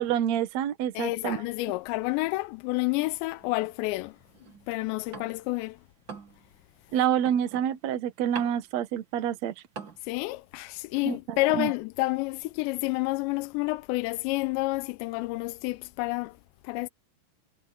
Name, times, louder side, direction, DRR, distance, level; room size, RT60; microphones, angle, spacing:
voice 1, 0.0-1.4 6.9-9.5 11.0-11.7, right 10 dB, 90° right, 1.5 m, -27 dB
voice 2, 0.9-4.2 4.7-5.8 10.0-16.4 16.6-16.9, left 21 dB, 90° left, 2.9 m, -29 dB
sound 1, 2.9-5.6 5.9-10.0, right 5 dB, 55° right, 1.3 m, -45 dB
omnidirectional pair, 5.1 m